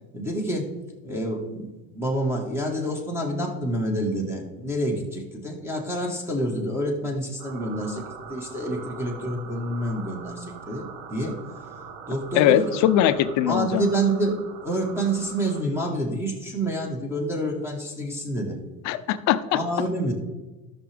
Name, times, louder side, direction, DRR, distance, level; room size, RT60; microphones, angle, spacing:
voice 1, 0.1-0.7 1.0-8.0 8.3-11.4 12.1-12.6 13.5-18.6 19.5-20.1, right 1 dB, 5° right, 0 dB, 1.5 m, -28 dB
sound 1, 7.4-15.6, right 6 dB, 65° right, 1.2 m, -42 dB
voice 2, 12.3-13.9 18.8-19.6, left 11 dB, 45° left, 12 dB, 0.6 m, -21 dB
13.0 x 6.1 x 3.4 m, 1.2 s
supercardioid pair, 135°, 40 cm